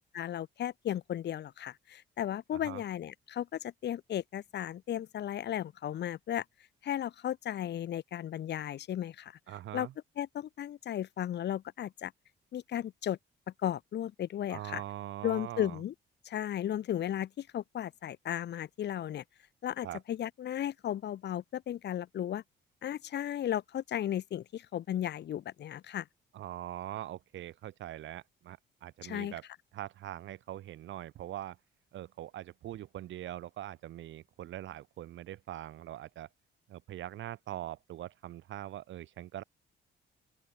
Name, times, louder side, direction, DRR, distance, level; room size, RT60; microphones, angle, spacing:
voice 1, 0.1-6.4 6.8-9.3 9.7-9.9 10.2-12.1 12.5-13.2 13.6-14.8 15.2-15.9 16.2-19.2 19.6-22.4 22.8-26.0 29.0-29.3, left 11 dB, 60° left, 0.8 m, -35 dB
voice 2, 2.5-2.8 9.5-9.9 14.5-15.8 19.8-20.0 26.3-29.4 29.7-31.6 31.9-36.3 36.7-39.4, right 13 dB, 70° right, 0.9 m, -42 dB
open air
cardioid pair, 90°, 20 cm